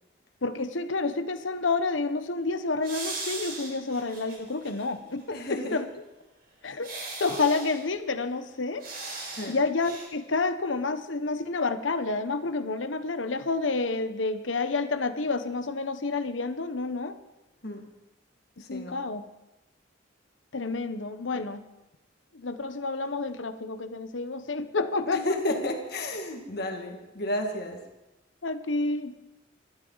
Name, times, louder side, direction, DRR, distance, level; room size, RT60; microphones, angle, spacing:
voice 1, 0.4-5.2 5.5-5.8 6.6-6.9 7.2-8.8 9.5-17.2 18.7-19.3 20.5-21.6 22.3-25.2 28.4-29.1, left 3 dB, 90° left, 10 dB, 1.0 m, -29 dB
sound 1, 2.8-4.9 5.2-5.3 6.8-7.9 8.8-9.5 9.8-10.1, right 3 dB, 55° right, 4.4 m, -38 dB
voice 2, 5.3-5.8 9.3-9.6 17.6-17.9 18.6-19.1 25.1-27.9, left 1 dB, 55° left, 3 dB, 2.1 m, -32 dB
25.0 x 12.0 x 4.0 m, 1.0 s
head